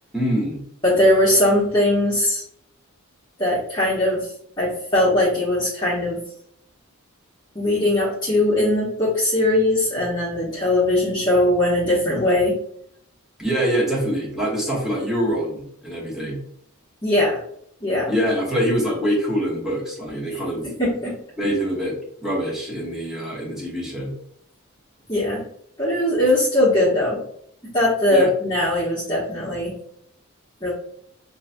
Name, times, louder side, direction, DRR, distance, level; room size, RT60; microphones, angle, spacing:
voice 1, 0.1-0.6 13.4-16.4 18.1-20.7 21.4-21.9 22.2-24.1 28.1-28.3, equal, ahead, -6 dB, 1.2 m, -24 dB
voice 2, 0.8-2.4 3.4-4.3 4.6-6.2 7.5-12.6 17.0-17.4 17.8-18.1 20.6-21.2 25.1-25.4 25.8-27.2 27.7-29.7 30.6-30.7, left 1 dB, 20° left, -9 dB, 1.1 m, -20 dB
5.7 x 2.7 x 2.2 m, 0.68 s
head